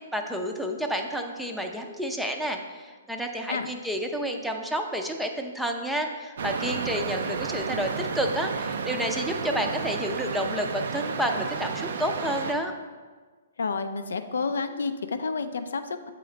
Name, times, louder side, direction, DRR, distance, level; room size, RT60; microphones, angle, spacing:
voice 1, 0.1-12.7, equal, ahead, 3 dB, 0.5 m, -30 dB
sound 1, 6.4-12.5, right 5 dB, 70° right, 0.4 m, -32 dB
voice 2, 13.6-16.1, left 4 dB, 80° left, 9 dB, 0.4 m, -30 dB
7.7 x 3.7 x 3.2 m, 1.4 s
hypercardioid pair, 135°, 0 cm